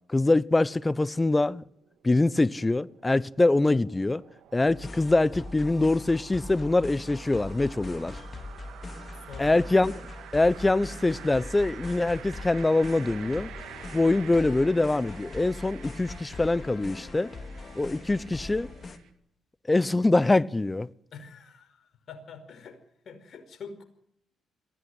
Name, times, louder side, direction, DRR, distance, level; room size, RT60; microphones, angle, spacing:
voice 1, 0.1-1.6 2.0-4.2 4.5-8.2 9.4-9.9 10.3-13.5 13.9-17.3 17.7-18.7 19.7-20.9, left 2 dB, 20° left, 0.8 m, -24 dB
sound 1, 1.8-19.1, right 10 dB, 80° right, 2.1 m, -49 dB
sound 2, 4.7-19.0, left 2 dB, 40° left, 2.5 m, -41 dB
voice 2, 9.1-9.7 21.1-22.8 23.0-23.8, left 5 dB, 60° left, 5.0 m, -45 dB
22.5 x 16.0 x 8.0 m
supercardioid pair, 55°, 0 cm